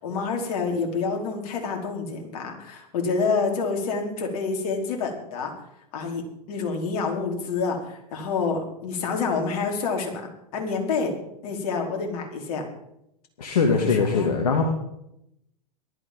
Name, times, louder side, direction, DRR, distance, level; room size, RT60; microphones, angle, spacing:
voice 1, 0.0-5.5 5.9-6.2 6.5-11.1 11.4-12.7 13.7-14.3, left 4 dB, 60° left, 2 dB, 4.8 m, -28 dB
voice 2, 13.4-14.6, left 5 dB, 75° left, 3 dB, 2.4 m, -21 dB
18.5 x 13.0 x 5.4 m, 0.82 s
hypercardioid pair, 95°, 20 cm